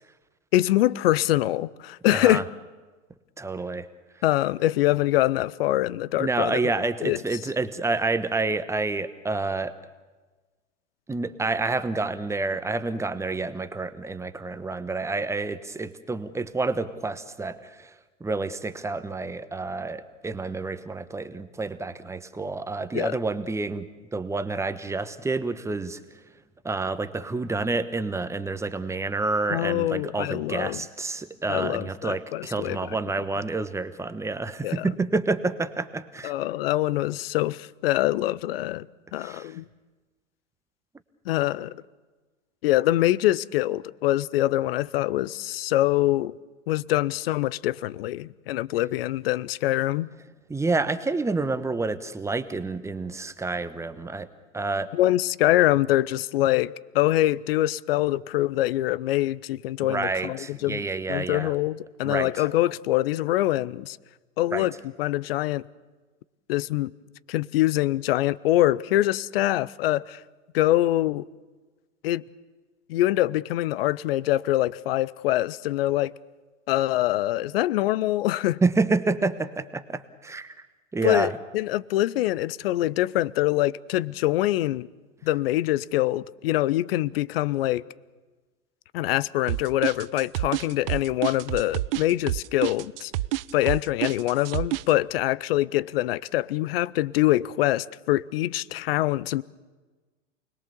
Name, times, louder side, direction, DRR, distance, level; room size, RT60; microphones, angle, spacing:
voice 1, 0.5-2.4 4.2-6.6 7.0-7.2 22.9-23.2 29.5-30.8 31.5-32.8 34.6-34.9 36.2-38.9 39.1-39.6 41.3-41.7 42.6-46.3 46.7-50.1 54.9-60.8 61.1-64.0 64.4-65.7 66.5-66.9 67.3-70.2 70.5-71.2 72.0-72.2 72.9-76.1 76.7-78.6 81.0-84.9 85.2-87.8 88.9-93.1 93.5-99.4, left 15 dB, 50° left, 0.8 m, -24 dB
voice 2, 2.1-2.4 3.4-3.9 6.2-9.8 11.1-17.9 18.2-26.0 26.6-36.3 39.2-39.5 50.5-54.3 54.5-54.9 59.9-61.5 62.0-62.4 64.5-64.7 78.6-80.5 80.9-81.4, right 3 dB, 10° right, 1.1 m, -28 dB
sound 1, 89.5-94.9, right 15 dB, 50° right, 0.7 m, -28 dB
29.0 x 21.0 x 7.0 m
figure-of-eight pair, 100°, 37 cm